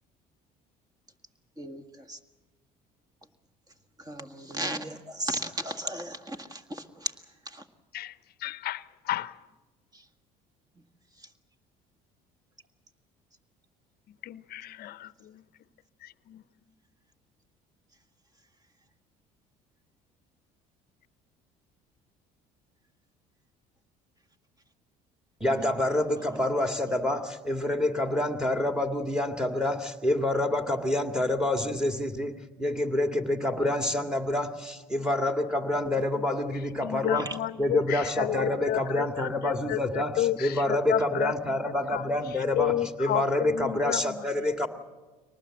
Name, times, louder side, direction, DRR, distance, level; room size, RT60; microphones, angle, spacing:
voice 1, 4.1-6.6 7.0-7.1, right 1 dB, 20° right, 8 dB, 1.7 m, -34 dB
voice 2, 8.4-8.8 9.1-9.3 14.2-15.1 36.8-37.8 38.2-39.0 39.7-40.4 40.9-41.3 41.9-42.0 42.6-44.0, left 13 dB, 55° left, 17 dB, 0.7 m, -30 dB
voice 3, 25.4-44.7, left 1 dB, 5° right, 6 dB, 2.1 m, -27 dB
23.5 x 19.0 x 7.8 m, 1.3 s
supercardioid pair, 75°, 18 cm